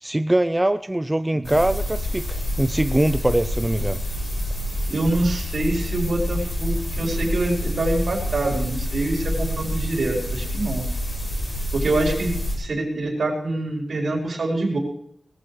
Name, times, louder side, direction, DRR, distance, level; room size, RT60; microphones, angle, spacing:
voice 1, 0.0-4.0, right 1 dB, 15° right, 11 dB, 0.4 m, -22 dB
sound 1, 1.4-12.6, left 1 dB, 35° left, 6.7 m, -27 dB
voice 2, 4.9-10.8 11.7-14.8, right 2 dB, 70° right, 0 dB, 4.5 m, -25 dB
20.0 x 15.0 x 3.3 m, 0.66 s
wide cardioid pair, 125°, 0 cm